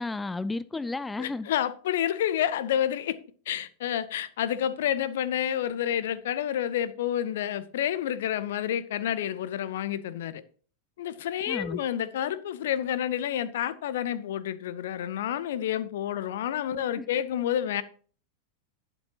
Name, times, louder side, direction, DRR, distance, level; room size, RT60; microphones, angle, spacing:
voice 1, 0.0-1.5 11.5-11.8 16.8-17.0, left 3 dB, 10° left, 0.3 m, -33 dB
voice 2, 1.2-3.2 3.5-10.4 11.0-17.8, left 10 dB, 55° left, 0.7 m, -29 dB
11.5 x 9.1 x 2.9 m
figure-of-eight pair, 90°, 0 cm